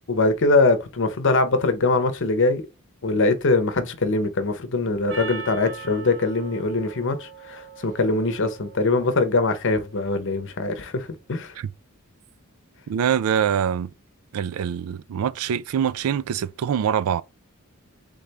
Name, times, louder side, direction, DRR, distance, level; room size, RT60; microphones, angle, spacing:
voice 1, 0.1-2.6 3.0-11.5, left 3 dB, 60° left, 0.8 m, -22 dB
Percussion, 5.1-9.7, right 5 dB, 60° right, 1.7 m, -40 dB
voice 2, 12.9-13.9 14.3-17.2, right 8 dB, 85° right, 0.3 m, -24 dB
3.6 x 3.4 x 3.9 m
head